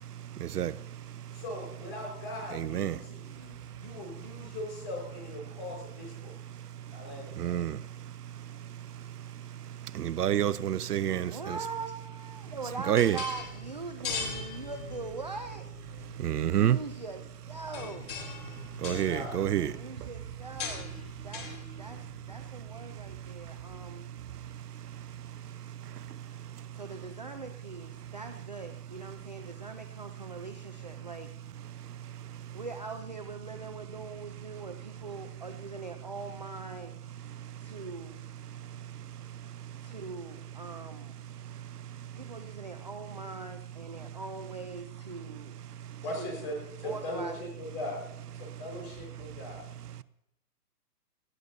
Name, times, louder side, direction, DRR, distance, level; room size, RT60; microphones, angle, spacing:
voice 1, 1.3-6.4 6.9-7.8 18.9-19.6 46.0-48.0 48.3-49.6, left 1 dB, 25° left, -1 dB, 4.8 m, -40 dB
voice 2, 2.5-3.0 7.4-7.8 10.0-11.6 12.9-13.2 16.2-16.8 18.8-19.7, right 11 dB, 75° right, 17 dB, 0.7 m, -27 dB
voice 3, 11.1-16.0 16.4-18.2 19.2-19.3 19.7-21.0 21.2-21.5 21.8-24.1 26.3-26.4 26.7-31.3 32.5-37.0 37.6-38.2 39.8-41.2 42.1-45.6 46.2-46.4 46.8-47.4, right 3 dB, 30° right, 5 dB, 0.4 m, -42 dB
sound 1, 12.4-23.8, left 5 dB, 60° left, 3.9 m, -42 dB
19.0 x 14.5 x 2.7 m, 0.86 s
hypercardioid pair, 150°, 48 cm